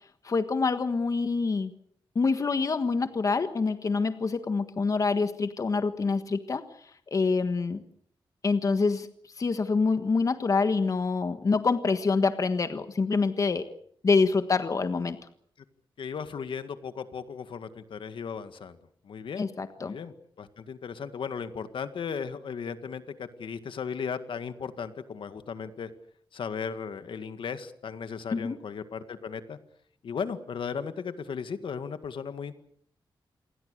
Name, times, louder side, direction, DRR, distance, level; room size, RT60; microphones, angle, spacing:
voice 1, 0.2-1.7 2.1-6.6 7.1-7.8 8.4-9.1 9.4-13.6 14.0-15.2 19.4-20.0 28.3-28.6, left 4 dB, 40° left, 10 dB, 1.5 m, -26 dB
voice 2, 16.0-18.8 19.0-19.5 19.8-25.9 26.3-29.6 30.0-32.6, left 6 dB, 75° left, 10 dB, 2.0 m, -36 dB
28.0 x 22.0 x 6.7 m, 0.63 s
wide cardioid pair, 145°, 9 cm